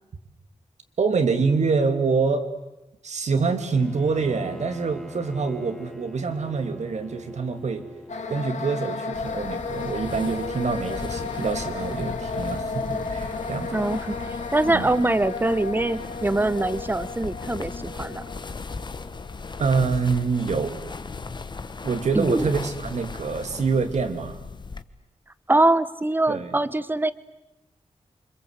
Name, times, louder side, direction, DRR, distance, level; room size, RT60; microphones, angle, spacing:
voice 1, 1.0-2.4 3.0-7.9 8.3-13.8 14.7-14.9 19.6-20.7 21.8-24.4 26.3-26.6, right 4 dB, 70° right, 7 dB, 2.8 m, -25 dB
Bowed string instrument, 3.7-8.6, left 1 dB, 5° left, 1.7 m, -42 dB
sound 1, 8.1-20.0, left 4 dB, 75° left, 2.4 m, -34 dB
sound 2, 9.1-24.8, left 4 dB, 40° left, 1.2 m, -38 dB
voice 2, 13.7-14.1 14.5-18.2 22.1-22.5 25.5-27.1, right 2 dB, 15° right, 15 dB, 1.1 m, -23 dB
28.0 x 25.5 x 8.2 m, 0.96 s
wide cardioid pair, 125°, 12 cm